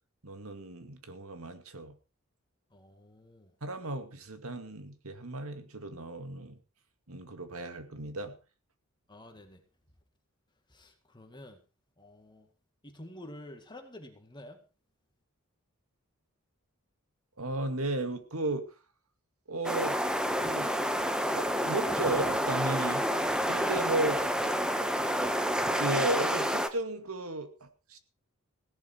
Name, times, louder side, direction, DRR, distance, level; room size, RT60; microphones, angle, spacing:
voice 1, 0.2-1.9 3.6-6.6 7.1-8.4 17.4-18.7 19.5-20.0 20.4-20.7 21.3-23.1 23.5-24.3 25.8-28.0, right 2 dB, 80° right, 8 dB, 2.2 m, -34 dB
voice 2, 2.7-3.5 9.1-9.6 10.7-11.6 12.0-12.5 12.8-14.6, left 1 dB, 20° left, 4 dB, 2.1 m, -49 dB
sound 1, 19.6-26.7, equal, 5° right, 1.2 m, -29 dB
17.0 x 11.5 x 4.6 m, 0.33 s
head